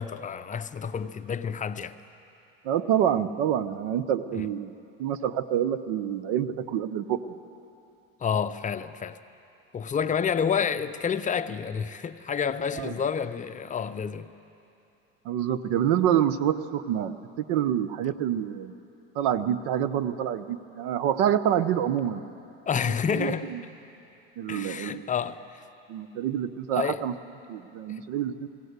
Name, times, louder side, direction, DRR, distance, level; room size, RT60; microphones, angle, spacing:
voice 1, 0.0-2.0 4.3-4.5 8.2-9.2 9.7-14.3 22.7-23.5 24.5-25.6 26.7-27.0 27.9-28.0, left 7 dB, 25° left, 0.6 m, -29 dB
voice 2, 2.6-4.7 5.0-7.3 12.8-12.9 15.2-17.1 17.5-18.7 19.1-22.2 23.1-23.6 24.4-25.1 25.9-27.1 27.5-28.5, right 10 dB, 75° right, 0.9 m, -27 dB
20.5 x 16.5 x 8.1 m
supercardioid pair, 110°, 29 cm